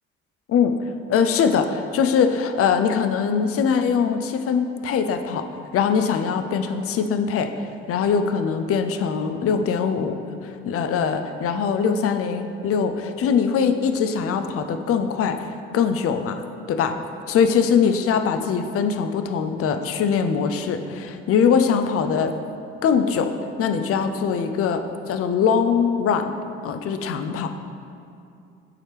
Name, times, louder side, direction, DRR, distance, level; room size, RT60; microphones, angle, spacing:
voice 1, 1.1-5.5 5.7-7.5 7.9-10.2 10.4-15.4 15.7-16.4 16.7-16.9 17.3-22.3 22.8-23.3 23.6-26.3 26.6-27.5, left 6 dB, 45° left, 7 dB, 0.5 m, -22 dB
7.2 x 4.3 x 3.3 m, 2.5 s
hypercardioid pair, 45°, 31 cm